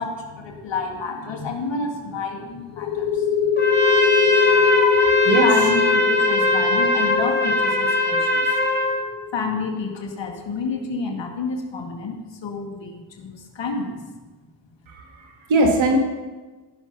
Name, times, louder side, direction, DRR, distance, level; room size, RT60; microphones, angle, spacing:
voice 1, 0.0-3.5 5.4-8.5 9.3-14.0, left 4 dB, 65° left, 2 dB, 2.1 m, -29 dB
sound 1, 2.8-10.2, left 7 dB, 90° left, 1.4 m, -22 dB
Trumpet, 3.6-9.0, left 1 dB, 20° left, 2.7 m, -21 dB
voice 2, 14.9-16.0, right 2 dB, 75° right, 1 dB, 2.2 m, -20 dB
15.5 x 6.5 x 5.6 m, 1.3 s
supercardioid pair, 50°, 47 cm